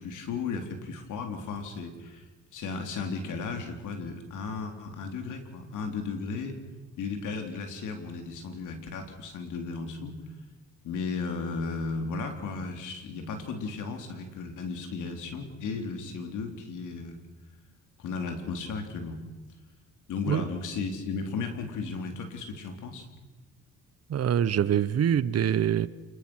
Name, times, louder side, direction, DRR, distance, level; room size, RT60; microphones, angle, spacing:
voice 1, 0.0-2.2 2.5-6.6 7.0-10.2 10.8-17.2 18.0-19.2 20.1-23.1, left 4 dB, 80° left, 5 dB, 3.8 m, -35 dB
voice 2, 24.1-25.9, right 9 dB, 55° right, 17 dB, 1.0 m, -24 dB
27.5 x 21.5 x 6.4 m, 1.2 s
cardioid pair, 90°, 30 cm